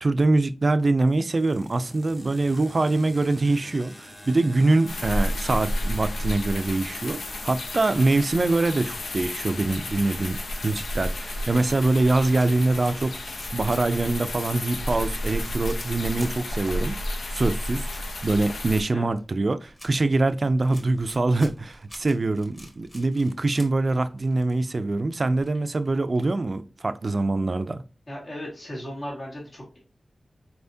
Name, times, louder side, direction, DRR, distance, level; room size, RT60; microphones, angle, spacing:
voice 1, 0.0-16.9 17.3-17.9 18.2-27.8, right 2 dB, 45° right, 0.4 m, -24 dB
sound 1, 0.6-17.4, left 1 dB, 30° left, 1.4 m, -48 dB
sound 2, 4.9-18.8, left 1 dB, 80° left, 0.7 m, -31 dB
sound 3, 12.3-24.7 24.9-25.0 25.2-26.5, equal, 15° left, 1.4 m, -49 dB
voice 2, 28.1-29.8, equal, 50° left, 1.7 m, -36 dB
4.3 x 3.4 x 2.6 m
wide cardioid pair, 70°, 0 cm